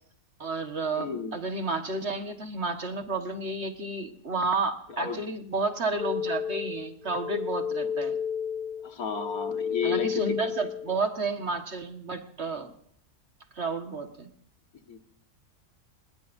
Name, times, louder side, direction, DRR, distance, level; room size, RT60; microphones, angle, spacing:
voice 1, 0.4-8.1 9.8-12.7 13.6-14.3, right 3 dB, 45° right, 6 dB, 1.7 m, -31 dB
voice 2, 0.9-1.4 5.0-5.2 8.8-10.5 14.9-15.0, left 6 dB, 70° left, 7 dB, 2.0 m, -32 dB
sound 1, 6.0-11.0, left 7 dB, 30° right, 1.7 m, -32 dB
27.0 x 20.5 x 2.6 m, 0.65 s
omnidirectional pair, 1.6 m